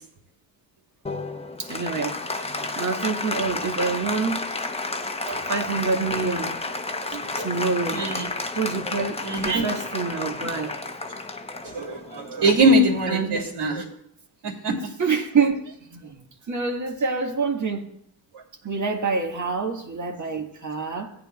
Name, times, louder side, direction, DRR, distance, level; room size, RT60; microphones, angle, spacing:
Applause, 1.1-12.9, left 3 dB, 15° left, 0.9 m, -31 dB
voice 1, 1.6-2.2 2.7-4.4 5.5-6.6 7.4-8.1 8.6-10.7 13.1-13.4 15.0-17.9 18.6-21.1, right 4 dB, 40° right, 3 dB, 1.7 m, -26 dB
voice 2, 7.1-7.5 7.9-8.3 9.2-9.6 11.6-13.8 14.4-14.7, right 1 dB, 65° right, -2 dB, 3.0 m, -22 dB
15.5 x 8.8 x 2.4 m, 0.70 s
supercardioid pair, 55°, 44 cm